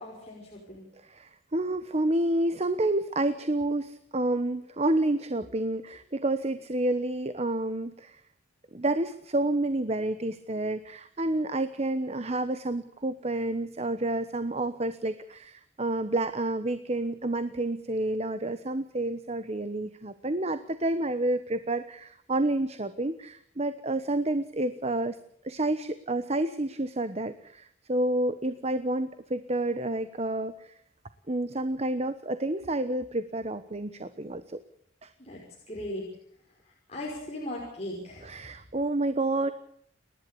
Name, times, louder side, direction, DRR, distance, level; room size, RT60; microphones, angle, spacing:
voice 1, 0.0-0.9 35.2-35.4 35.7-36.0 36.9-38.5, left 1 dB, 35° left, -3 dB, 5.7 m, -38 dB
voice 2, 1.0-8.2 8.7-25.2 25.4-30.7 31.3-34.6 35.0-35.1 38.2-39.5, right 2 dB, 35° right, 11 dB, 1.0 m, -29 dB
29.5 x 11.5 x 8.5 m, 0.66 s
head